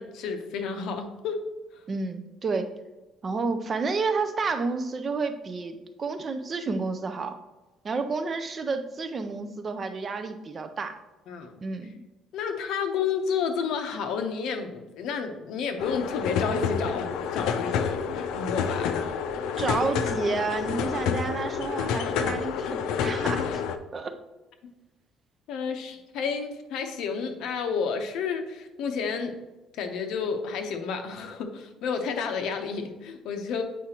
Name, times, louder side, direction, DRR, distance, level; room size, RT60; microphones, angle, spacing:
voice 1, 0.0-1.4 11.3-11.5 12.3-18.0 18.3-18.9 25.5-29.3 29.7-33.6, left 6 dB, 65° left, 5 dB, 0.8 m, -31 dB
voice 2, 1.9-2.7 3.2-7.3 7.8-10.9 11.6-12.0 19.6-23.6 23.9-24.1, right 4 dB, 25° right, 8 dB, 0.4 m, -30 dB
sound 1, 15.8-23.8, left 7 dB, 85° left, 0.4 m, -28 dB
8.2 x 4.8 x 2.9 m, 1.1 s
cardioid pair, 165°, 0 cm